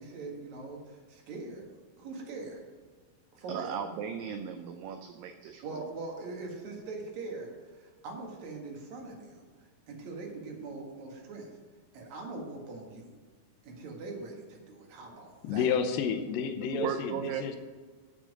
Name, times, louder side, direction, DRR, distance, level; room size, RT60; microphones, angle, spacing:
voice 1, 0.0-1.7 2.0-2.6 3.3-3.8 5.6-9.4 9.9-11.5 11.9-13.1 13.6-15.7, right 3 dB, 55° right, 0 dB, 2.6 m, -42 dB
voice 2, 3.5-5.9 16.7-17.4, right 8 dB, 80° right, 7 dB, 2.0 m, -36 dB
voice 3, 15.4-17.6, left 7 dB, 80° left, 7 dB, 2.1 m, -30 dB
7.3 x 7.2 x 7.4 m, 1.5 s
omnidirectional pair, 4.6 m